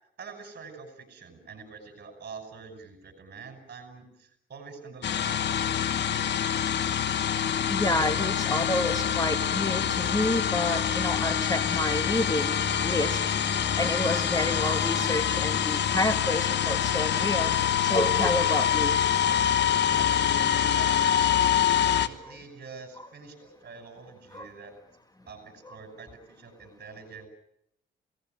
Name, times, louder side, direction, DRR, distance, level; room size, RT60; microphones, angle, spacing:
voice 1, 0.0-6.5 20.0-24.7 25.3-27.3, right 4 dB, 50° right, 5 dB, 5.7 m, -46 dB
sound 1, 5.0-22.1, left 9 dB, 60° left, 1.3 m, -25 dB
voice 2, 7.7-13.2 13.5-17.6 17.8-19.0 19.3-19.4 24.3-24.5 25.6-25.8, left 1 dB, 20° left, 8 dB, 1.8 m, -29 dB
27.5 x 18.0 x 9.1 m, 0.78 s
cardioid pair, 90°, 20 cm